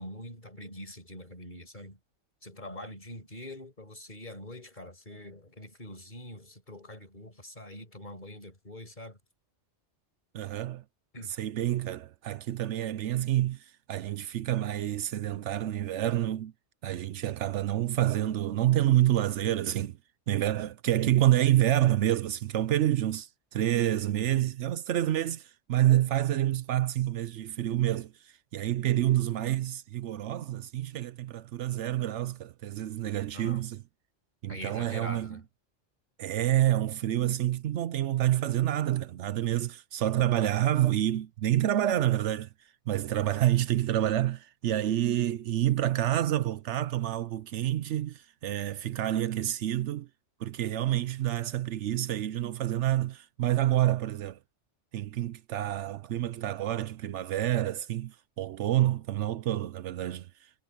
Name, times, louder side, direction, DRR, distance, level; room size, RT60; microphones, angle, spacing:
voice 1, 0.0-2.0 2.4-9.2 11.1-11.4 24.1-24.5 33.3-33.7 34.5-35.4, left 1 dB, 40° left, 5.8 m, -44 dB
voice 2, 10.3-10.8 11.4-16.5 16.8-20.0 20.3-28.1 28.5-33.8 34.4-35.4 36.2-42.5 42.9-50.1 50.4-54.4 54.9-60.3, right 13 dB, 75° right, 0.9 m, -28 dB
omnidirectional pair, 1.2 m